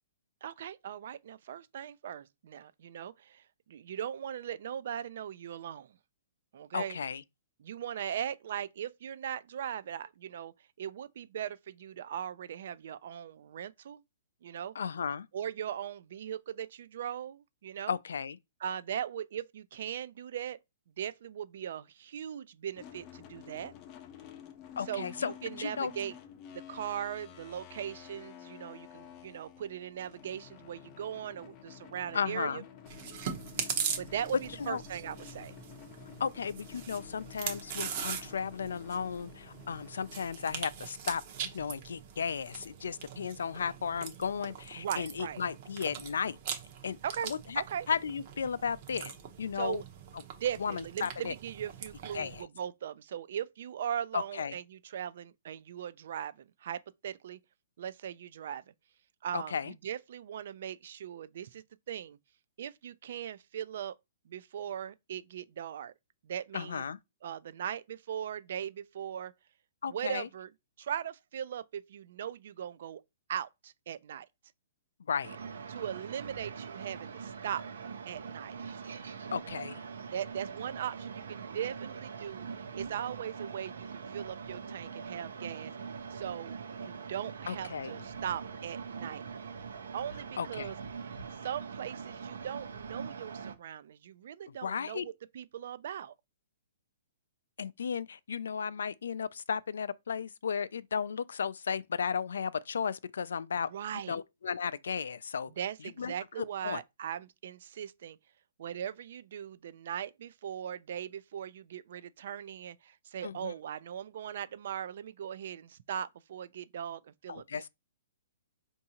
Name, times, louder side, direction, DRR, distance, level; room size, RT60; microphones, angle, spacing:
voice 1, 0.4-6.0 6.5-7.0 7.6-14.0 14.4-14.7 15.3-18.0 18.6-20.6 21.0-23.7 24.9-26.1 26.5-32.6 33.9-34.4 34.7-35.5 43.1-43.3 44.8-45.4 47.0-47.9 49.5-49.8 50.3-57.4 57.8-58.6 59.2-59.5 59.8-62.2 62.6-64.0 64.3-65.9 66.2-66.8 67.2-69.3 69.9-70.5 70.8-73.0 73.3-74.3 75.7-77.6 78.1-78.5 80.1-89.2 89.9-90.8 91.4-96.1 103.7-104.2 105.6-108.2 108.6-117.7, right 9 dB, 55° right, 0.3 m, -39 dB
voice 2, 6.7-7.2 14.7-15.3 17.9-18.4 24.8-25.9 32.1-32.7 34.6-34.8 36.2-41.2 41.5-46.4 46.8-47.0 47.2-47.6 47.9-49.1 49.4-49.8 50.6-51.3 52.1-52.5 54.1-54.5 59.3-59.7 66.5-67.0 69.8-70.3 75.1-75.4 79.3-79.8 87.5-88.0 90.4-90.7 94.5-95.0 97.6-103.7 104.1-105.5 105.8-106.8 113.2-113.5 117.3-117.7, left 6 dB, 85° left, 0.3 m, -35 dB
sound 1, 22.8-40.7, left 9 dB, 25° left, 0.5 m, -51 dB
Chewing mastication, 32.9-52.4, right 7 dB, 35° right, 0.7 m, -42 dB
sound 2, 75.2-93.5, right 6 dB, 80° right, 0.7 m, -43 dB
4.6 x 2.6 x 2.8 m
hypercardioid pair, 165°, 0 cm